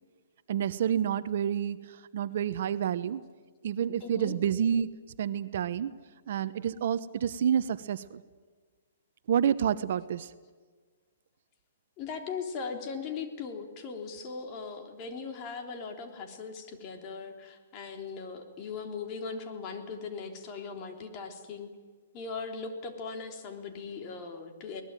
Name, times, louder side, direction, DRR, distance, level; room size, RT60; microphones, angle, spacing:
voice 1, 0.5-1.8 2.1-3.2 3.6-4.9 5.2-5.9 6.3-8.2 9.3-10.3, right 9 dB, 60° right, 13 dB, 1.0 m, -28 dB
voice 2, 4.0-4.4 12.0-21.7 22.1-24.8, left 5 dB, 30° left, 4 dB, 3.5 m, -39 dB
23.0 x 20.0 x 9.1 m, 1.4 s
hypercardioid pair, 155°, 0 cm